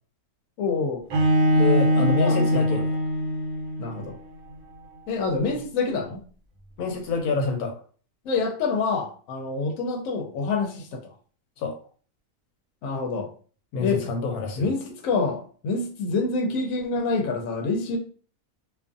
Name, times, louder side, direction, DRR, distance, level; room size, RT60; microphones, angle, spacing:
voice 1, 0.6-1.0 2.0-2.8 3.8-4.2 5.1-6.2 8.2-11.0 12.8-13.3 13.8-14.0 14.6-18.0, left 4 dB, 70° left, 2 dB, 0.9 m, -27 dB
Bowed string instrument, 1.1-4.1, equal, 70° right, 1.1 m, -22 dB
voice 2, 1.5-2.9 6.8-7.7 11.6-11.7 13.7-14.7, left 4 dB, 90° left, 3 dB, 1.1 m, -27 dB
2.5 x 2.4 x 2.5 m, 0.42 s
omnidirectional pair, 1.6 m